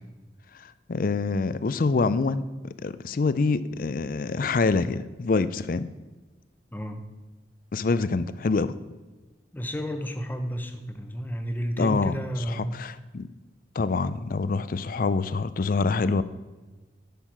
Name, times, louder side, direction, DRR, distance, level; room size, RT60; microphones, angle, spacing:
voice 1, 0.9-2.4 2.8-5.9 7.7-8.7 11.8-12.2 12.5-13.3 13.8-16.2, left 4 dB, 50° left, 15 dB, 0.4 m, -25 dB
voice 2, 6.7-7.0 9.5-12.8, equal, 10° left, 6 dB, 0.7 m, -31 dB
10.0 x 6.4 x 6.0 m, 1.2 s
head